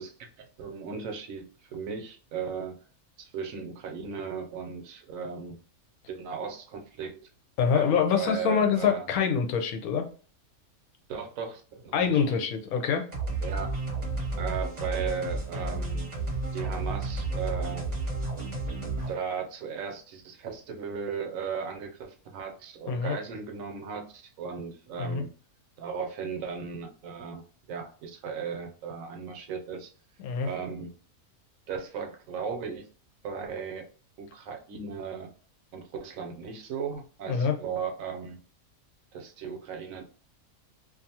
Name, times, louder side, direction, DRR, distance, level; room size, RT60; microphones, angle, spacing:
voice 1, 0.0-2.8 3.2-5.6 6.1-7.1 7.7-7.9 8.1-9.1 11.1-12.4 13.4-13.8 14.4-16.1 16.5-17.9 19.1-25.3 25.8-27.4 27.7-29.9 30.4-30.9 31.7-32.8 33.2-33.9 34.2-35.3 35.7-38.4 39.1-40.0, right 6 dB, 70° right, 4 dB, 0.9 m, -36 dB
voice 2, 7.6-10.0 11.9-13.1 22.9-23.2 25.0-25.2 30.2-30.5 37.3-37.6, left 6 dB, 85° left, 5 dB, 1.1 m, -25 dB
sound 1, 13.1-19.1, right 3 dB, 40° right, 0.6 m, -32 dB
2.5 x 2.4 x 2.7 m, 0.40 s
omnidirectional pair, 1.5 m